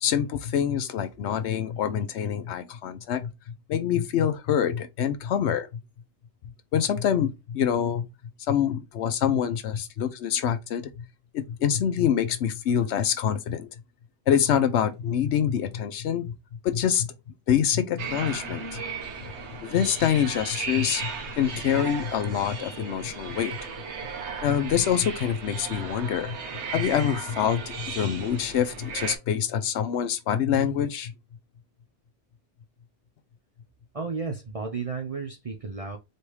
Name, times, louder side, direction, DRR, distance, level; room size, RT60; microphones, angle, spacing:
voice 1, 0.0-5.8 6.7-8.1 8.5-11.1 11.3-13.7 14.3-16.3 16.6-17.1 17.5-18.8 19.6-23.6 24.4-26.4 26.7-31.1, left 9 dB, 70° left, 0.8 m, -26 dB
sound 1, 18.0-29.2, right 5 dB, 65° right, 1.2 m, -36 dB
voice 2, 33.9-36.0, right 4 dB, 45° right, 0.5 m, -33 dB
4.2 x 3.3 x 3.1 m
omnidirectional pair, 1.3 m